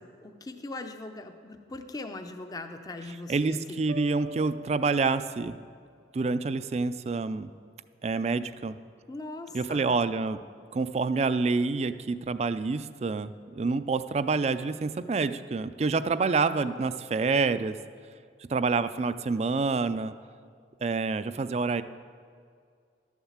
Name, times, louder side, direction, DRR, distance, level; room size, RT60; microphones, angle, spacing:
voice 1, 0.0-3.8 9.1-9.9, left 2 dB, 20° left, 6 dB, 0.6 m, -40 dB
voice 2, 3.3-5.6 6.1-7.5 8.0-8.8 9.5-10.4 10.7-17.8 18.5-20.1 20.8-21.8, right 4 dB, 35° right, 13 dB, 0.4 m, -27 dB
sound 1, 3.9-5.8, right 2 dB, 65° right, 0.8 m, -44 dB
12.0 x 7.2 x 7.2 m, 2.2 s
head